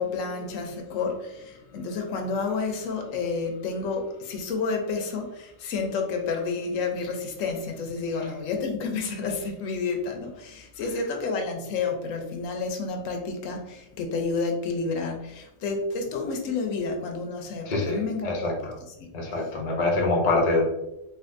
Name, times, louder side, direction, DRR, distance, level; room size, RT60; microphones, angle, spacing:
voice 1, 0.0-18.7 19.0-19.1, left 4 dB, 85° left, 4 dB, 1.0 m, -30 dB
voice 2, 17.6-18.8 19.1-20.6, left 2 dB, 40° left, -1 dB, 0.6 m, -25 dB
3.5 x 2.5 x 2.5 m, 0.91 s
omnidirectional pair, 1.3 m